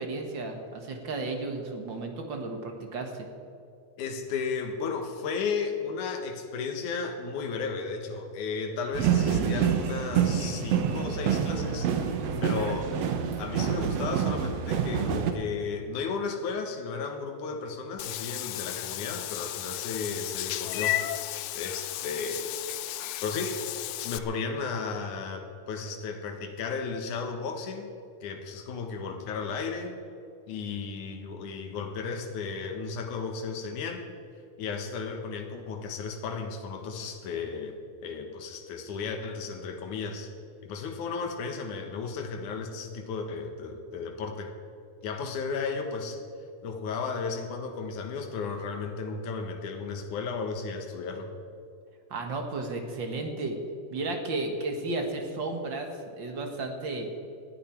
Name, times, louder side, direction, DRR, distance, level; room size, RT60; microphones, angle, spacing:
voice 1, 0.0-3.3 52.1-53.6 53.9-55.9 56.2-57.1, right 2 dB, 45° right, 3 dB, 1.8 m, -33 dB
voice 2, 4.0-12.9 13.4-21.0 21.5-22.5 23.2-23.6 24.0-27.9 28.2-30.0 30.5-34.2 34.6-40.3 40.6-44.5 45.0-46.2 46.6-51.3, left 5 dB, 75° left, 4 dB, 2.9 m, -34 dB
sound 1, 8.9-15.3, right 8 dB, 65° right, 2.0 m, -27 dB
Meow / Water / Bathtub (filling or washing), 18.0-24.2, left 14 dB, 90° left, 1.4 m, -34 dB
19.5 x 13.0 x 4.5 m, 2.5 s
omnidirectional pair, 3.6 m